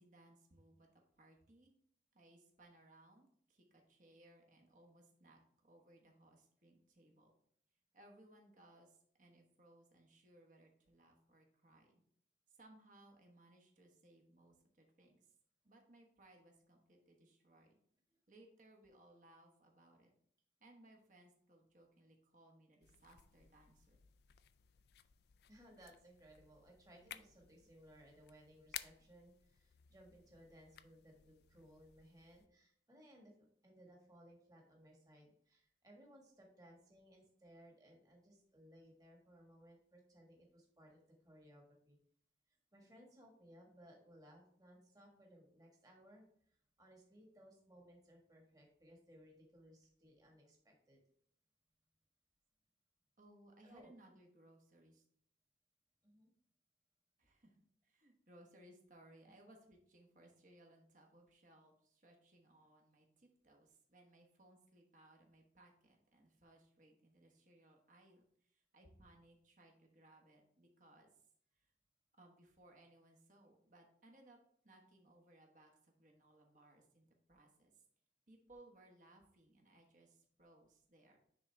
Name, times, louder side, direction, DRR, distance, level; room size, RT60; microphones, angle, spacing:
voice 1, 0.0-1.7 2.1-7.3 7.9-12.0 12.5-15.3 15.6-17.8 18.3-20.1 20.6-24.0 53.2-55.0 57.2-71.1 71.5-71.7 72.1-74.4 74.6-77.8 78.3-81.2, right 1 dB, 45° right, 2 dB, 1.2 m, -65 dB
sound 1, 22.8-32.5, left 11 dB, 60° left, 0.3 m, -57 dB
voice 2, 25.5-33.3 33.6-42.0 42.7-46.2 46.8-51.0 53.6-53.9 56.0-56.3 59.3-59.4, equal, 20° right, -1 dB, 1.5 m, -63 dB
9.7 x 3.8 x 3.4 m, 0.67 s
head